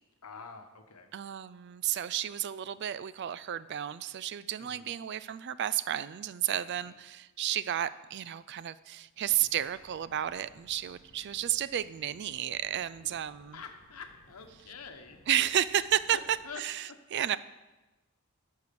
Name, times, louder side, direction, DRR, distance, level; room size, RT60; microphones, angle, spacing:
voice 1, 0.2-1.1 4.6-4.9 6.8-6.9 13.0-13.1 13.5-15.4 16.1-16.6 16.9-17.0, left 5 dB, 90° left, 6 dB, 1.1 m, -47 dB
voice 2, 1.1-13.6 15.3-17.4, right 11 dB, 50° right, 16 dB, 0.3 m, -32 dB
sound 1, 9.3-16.4, equal, 40° left, 1.5 m, -61 dB
12.0 x 4.7 x 6.8 m, 1.1 s
head